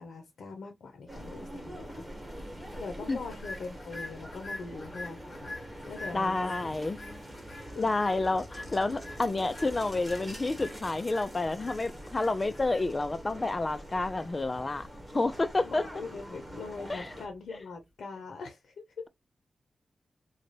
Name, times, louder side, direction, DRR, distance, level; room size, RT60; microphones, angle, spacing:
voice 1, 0.0-2.4 2.8-6.5 7.7-7.9 15.7-19.0, left 4 dB, 85° left, 0.6 m, -42 dB
sound 1, 1.1-17.3, equal, 5° right, 1.2 m, -44 dB
sound 2, 3.2-17.5, left 2 dB, 45° left, 2.3 m, -47 dB
voice 2, 6.1-7.0 7.8-14.9 15.1-15.8 16.9-17.1, left 2 dB, 25° left, 0.3 m, -29 dB
3.9 x 2.2 x 3.2 m
wide cardioid pair, 135°, 0 cm